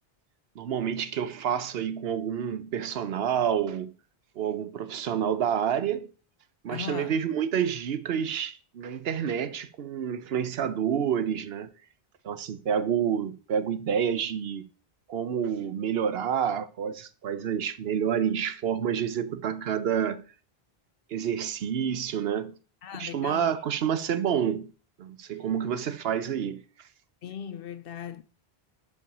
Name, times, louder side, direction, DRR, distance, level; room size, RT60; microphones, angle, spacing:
voice 1, 0.6-3.9 4.4-6.1 6.6-11.7 12.2-14.7 15.1-20.2 21.1-22.5 23.0-24.7 25.0-26.6, right 8 dB, 75° right, 0.9 m, -28 dB
voice 2, 6.7-7.2 22.8-23.6 27.2-28.2, left 9 dB, 70° left, 0.8 m, -38 dB
5.6 x 4.7 x 6.0 m
omnidirectional pair, 1.0 m